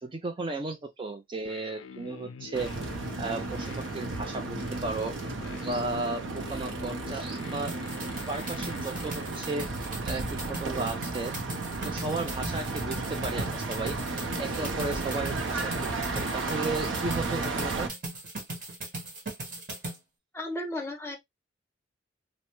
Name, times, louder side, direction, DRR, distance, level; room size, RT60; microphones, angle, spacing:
voice 1, 0.0-2.7 3.2-5.1 5.6-7.7 8.3-9.7 10.0-10.2 10.5-11.3 11.8-14.0 14.4-17.9, right 3 dB, 25° right, 0.4 m, -34 dB
sound 1, 1.4-9.4, left 6 dB, 75° left, 0.3 m, -47 dB
sound 2, 2.5-17.9, right 3 dB, 90° right, 0.6 m, -33 dB
sound 3, 7.7-20.0, right 2 dB, 45° right, 1.2 m, -39 dB
voice 2, 20.3-21.2, left 1 dB, 15° left, 0.7 m, -34 dB
3.2 x 2.0 x 2.9 m
head